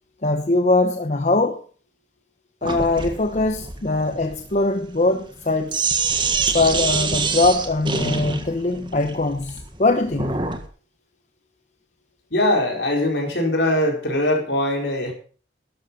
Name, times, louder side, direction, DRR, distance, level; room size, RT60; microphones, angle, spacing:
voice 1, 0.2-1.6 2.6-5.8 6.5-10.4, left 2 dB, 40° left, 0.9 m, -21 dB
Sink (filling or washing), 2.6-10.7, right 4 dB, 25° right, 1.6 m, -26 dB
voice 2, 12.3-15.1, left 1 dB, 65° left, 4.7 m, -21 dB
13.0 x 11.0 x 5.6 m
head